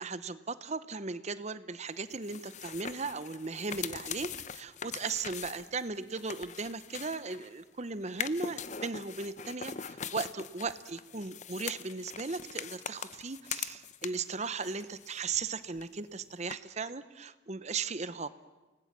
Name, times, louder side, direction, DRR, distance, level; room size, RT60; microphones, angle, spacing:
voice 1, 0.0-18.3, right 4 dB, 35° right, 14 dB, 0.8 m, -37 dB
sound 1, 2.1-7.6 8.1-14.3 14.6-15.5 15.7-15.8 16.5-16.6, left 7 dB, 35° left, 0.7 m, -42 dB
29.5 x 19.0 x 7.4 m, 1.1 s
head